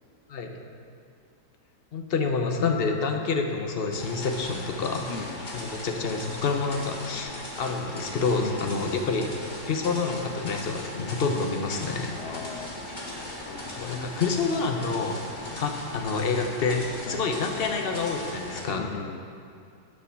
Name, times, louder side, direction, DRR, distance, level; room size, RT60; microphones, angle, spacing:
voice 1, 1.9-5.1 5.5-7.3 7.6-9.3 9.6-12.1 13.8-15.2 15.6-18.9, left 4 dB, 45° left, 3 dB, 0.9 m, -28 dB
sound 1, 3.9-18.6, left 1 dB, 30° left, 1.7 m, -38 dB
voice 2, 5.1-5.5 8.4-8.7 12.1-14.2 15.3-15.6 17.1-17.3 18.7-19.2, left 6 dB, 85° left, 7 dB, 0.6 m, -40 dB
10.0 x 7.4 x 5.9 m, 2.4 s
omnidirectional pair, 1.8 m